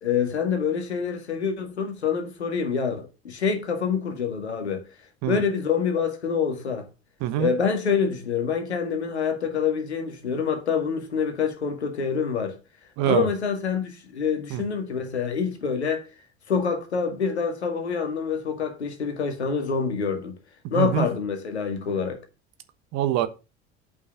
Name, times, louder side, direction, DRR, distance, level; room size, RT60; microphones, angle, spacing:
voice 1, 0.0-4.8 5.3-6.9 7.4-12.6 13.0-16.0 16.5-20.3 20.7-22.2, left 6 dB, 85° left, 1.9 m, -26 dB
voice 2, 13.0-13.3 14.5-14.6 20.6-21.1 22.9-23.3, right 12 dB, 55° right, 1.3 m, -24 dB
8.1 x 5.5 x 5.8 m
hypercardioid pair, 70°, 32 cm